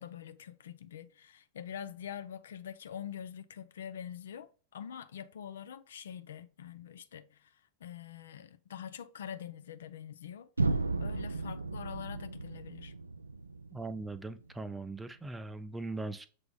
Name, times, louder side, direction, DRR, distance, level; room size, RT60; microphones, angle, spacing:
voice 1, 0.0-7.5 7.8-12.9, left 9 dB, 65° left, 0.4 m, -45 dB
sound 1, 10.6-14.5, right 3 dB, 80° right, 0.3 m, -34 dB
voice 2, 13.7-16.3, right 3 dB, 10° right, 0.4 m, -40 dB
6.8 x 3.3 x 2.2 m
figure-of-eight pair, 90°, 0 cm